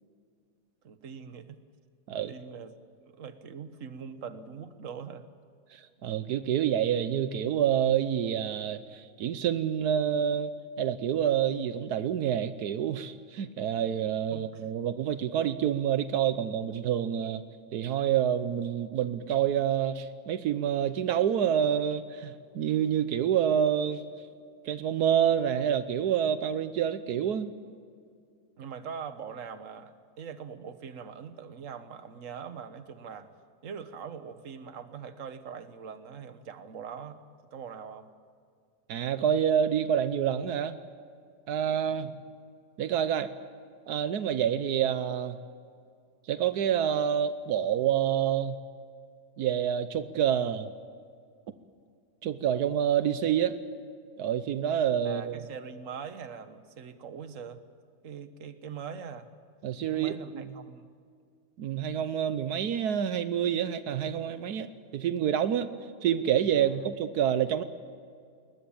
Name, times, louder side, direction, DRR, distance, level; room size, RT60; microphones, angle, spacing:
voice 1, 0.8-1.6 2.1-2.8 3.0-5.2 14.3-14.6 28.6-33.3 33.6-37.2 37.5-38.1 41.9-42.1 55.0-57.6 58.0-59.3 59.9-60.9 66.6-66.7, right 7 dB, 55° right, 10 dB, 1.5 m, -42 dB
voice 2, 5.7-17.4 17.7-24.0 24.6-27.5 38.9-40.8 41.5-42.1 42.8-43.3 43.9-45.4 46.3-48.6 49.4-50.7 52.2-53.5 54.2-55.4 59.6-60.4 61.6-65.7 66.0-67.6, right 9 dB, 85° right, 12 dB, 1.4 m, -27 dB
21.5 x 20.5 x 8.7 m, 2.2 s
omnidirectional pair, 1.7 m